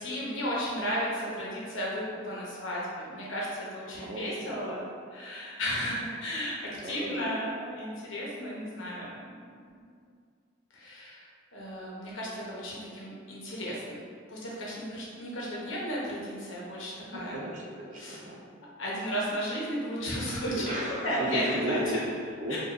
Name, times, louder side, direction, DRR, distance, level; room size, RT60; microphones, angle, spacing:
voice 1, 0.0-4.9 5.1-6.6 6.8-9.8 10.7-14.0 14.3-17.4 17.9-18.2 18.8-21.8 22.5-22.6, equal, 80° left, -6 dB, 1.0 m, -34 dB
voice 2, 3.9-4.8 6.7-7.3 17.1-18.4 20.2-22.6, right 1 dB, 35° right, -2 dB, 0.5 m, -35 dB
4.8 x 2.5 x 2.6 m, 2.1 s
head